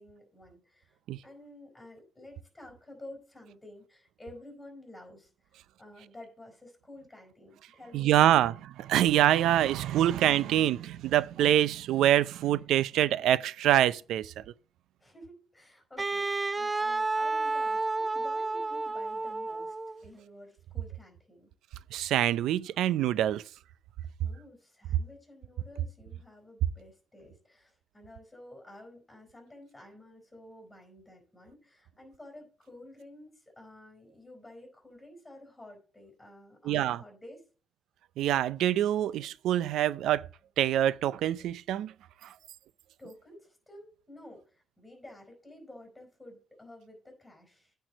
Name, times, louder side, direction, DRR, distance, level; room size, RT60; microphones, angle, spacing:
voice 1, 0.0-8.5 15.0-19.7 20.0-21.5 24.2-37.4 43.0-47.8, left 1 dB, 10° left, 4.7 m, -51 dB
voice 2, 7.9-8.5 8.9-14.3 21.9-23.4 36.7-37.0 38.2-40.2 40.6-41.9, right 12 dB, 85° right, 0.4 m, -25 dB
Wind instrument woodwind instrument, 16.0-20.0, right 3 dB, 20° right, 0.3 m, -31 dB
8.9 x 4.6 x 6.6 m
cardioid pair, 90°, 0 cm